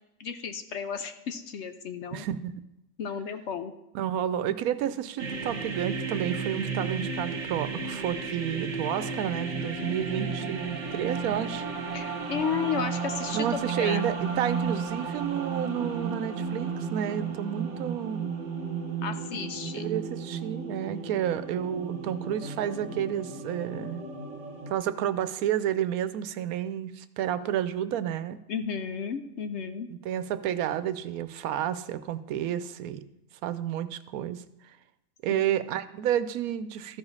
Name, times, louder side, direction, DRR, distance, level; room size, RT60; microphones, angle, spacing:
voice 1, 0.2-2.3 3.0-3.7 4.8-4.9 11.9-14.0 19.0-19.9 28.5-29.9 35.3-35.5, left 6 dB, 65° left, 8 dB, 0.8 m, -33 dB
voice 2, 2.1-2.5 3.9-11.7 13.3-18.3 19.7-24.1 24.7-28.4 29.9-33.1 33.4-34.4 35.2-37.0, right 10 dB, 85° right, 13 dB, 1.1 m, -30 dB
sound 1, 5.2-24.7, right 5 dB, 55° right, 1.4 m, -33 dB
13.5 x 4.9 x 5.5 m, 0.90 s
omnidirectional pair, 1.5 m